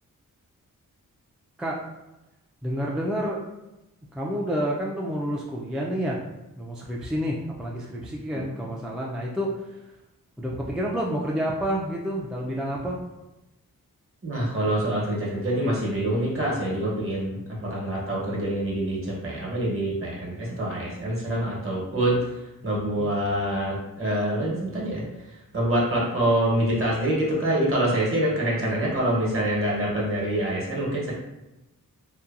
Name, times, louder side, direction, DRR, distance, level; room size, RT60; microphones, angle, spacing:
voice 1, 2.6-3.4 4.1-6.2 6.6-9.8 10.4-13.0 22.8-23.1, equal, ahead, -3 dB, 0.3 m, -29 dB
voice 2, 14.2-22.3 22.6-25.0 25.5-31.1, right 1 dB, 40° right, -4 dB, 1.0 m, -25 dB
2.8 x 2.2 x 2.4 m, 0.98 s
cardioid pair, 65°, 33 cm